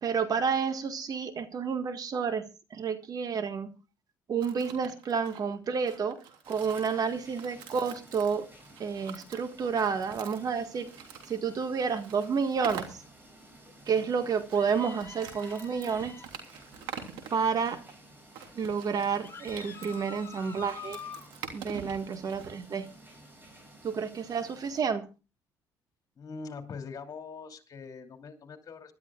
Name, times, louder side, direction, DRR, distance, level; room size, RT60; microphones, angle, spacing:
voice 1, 0.0-3.7 4.3-6.2 6.5-8.5 8.8-10.9 11.3-13.0 13.9-16.2 17.3-17.8 18.5-21.0 21.5-22.9 23.8-25.1, right 6 dB, 50° right, 1.7 m, -30 dB
sound 1, 4.4-11.4 11.9-13.0 14.3-17.4 18.3-22.5, right 8 dB, 80° right, 3.2 m, -45 dB
sound 2, 6.4-24.8, right 1 dB, 25° right, 7.2 m, -54 dB
sound 3, 14.5-16.3 19.2-21.3, left 5 dB, 25° left, 4.9 m, -46 dB
voice 2, 26.2-28.9, left 5 dB, 50° left, 2.8 m, -42 dB
25.5 x 12.0 x 2.4 m
supercardioid pair, 75°, 8 cm